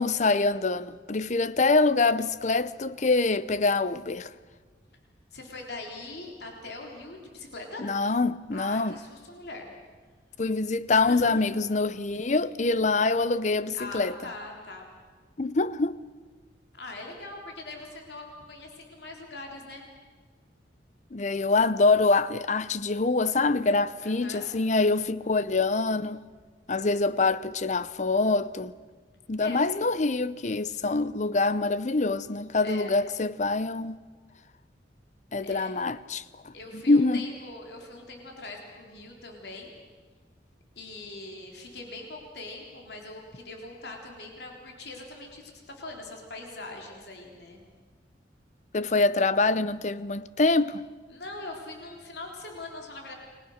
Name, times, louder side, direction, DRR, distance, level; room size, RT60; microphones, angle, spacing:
voice 1, 0.0-4.3 7.8-9.0 10.4-14.2 15.4-16.0 21.1-26.3 26.7-28.7 29.3-34.0 35.3-37.3 48.7-50.8, left 3 dB, 40° left, 0.7 m, -25 dB
voice 2, 5.3-7.9 8.5-9.7 10.9-11.6 13.7-14.9 16.7-19.9 24.0-24.5 29.4-29.6 32.6-32.9 35.4-36.0 36.5-39.7 40.8-47.6 51.1-53.1, left 2 dB, 65° left, 3.7 m, -42 dB
29.5 x 21.5 x 6.6 m
head